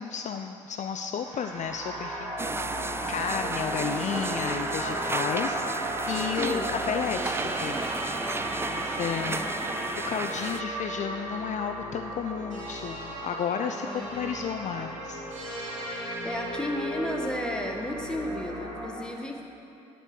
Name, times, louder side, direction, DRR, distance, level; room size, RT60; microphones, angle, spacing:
voice 1, 0.0-7.9 8.6-9.5 10.1-15.3, left 7 dB, 45° left, 6 dB, 0.5 m, -33 dB
sound 1, 1.2-18.9, right 1 dB, 90° right, 1.6 m, -35 dB
sound 2, 2.4-10.6, right 3 dB, 15° right, 0.4 m, -33 dB
voice 2, 6.3-6.7 9.3-9.7 13.6-14.4 15.9-19.4, left 1 dB, 5° left, 1 dB, 1.5 m, -34 dB
10.0 x 5.4 x 8.1 m, 2.8 s
hypercardioid pair, 55°, 17 cm